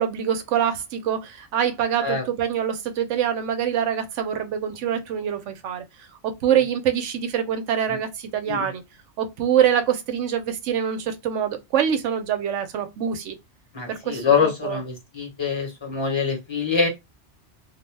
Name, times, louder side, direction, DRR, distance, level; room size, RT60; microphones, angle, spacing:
voice 1, 0.0-5.8 6.2-8.8 9.2-13.4 13.9-14.8, right 9 dB, 90° right, 0.9 m, -25 dB
voice 2, 13.7-16.9, left 5 dB, 25° left, 0.9 m, -24 dB
2.3 x 2.1 x 3.1 m
omnidirectional pair, 1.2 m